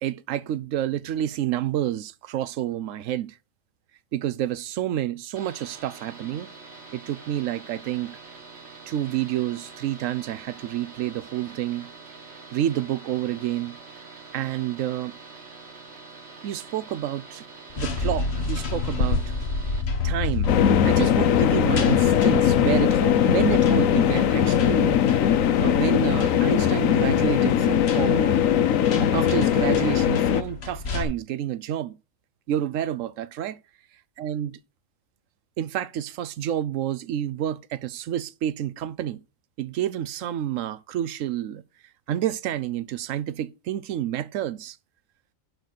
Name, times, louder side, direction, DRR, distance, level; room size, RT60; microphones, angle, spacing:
voice 1, 0.0-3.4 4.1-6.5 6.9-8.2 8.9-11.9 12.5-13.8 14.3-15.2 16.4-17.4 17.8-19.2 20.0-20.6 20.8-25.0 25.6-28.5 29.0-31.9 32.5-33.6 34.2-34.5 35.6-39.2 39.6-41.6 42.1-44.8, right 11 dB, 75° right, 1.0 m, -29 dB
sound 1, 5.4-19.8, right 4 dB, 55° right, 1.7 m, -45 dB
sound 2, 17.7-31.0, left 4 dB, 50° left, 1.5 m, -31 dB
sound 3, 20.5-30.4, left 9 dB, 80° left, 1.1 m, -20 dB
11.5 x 4.0 x 6.5 m
omnidirectional pair, 1.4 m